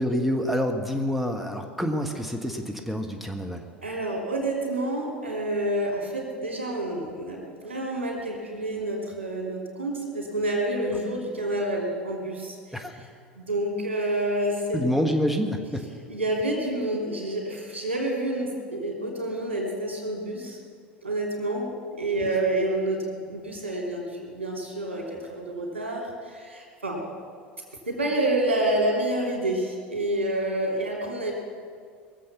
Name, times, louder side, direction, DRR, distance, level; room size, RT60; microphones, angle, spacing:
voice 1, 0.0-3.7 12.7-12.9 14.7-15.9, equal, ahead, 3 dB, 1.5 m, -27 dB
voice 2, 3.8-12.6 13.4-14.8 16.1-20.6 21.0-27.0 27.9-31.3, right 1 dB, 85° right, -1 dB, 3.2 m, -28 dB
21.5 x 7.7 x 6.9 m, 2.1 s
figure-of-eight pair, 80°, 6 cm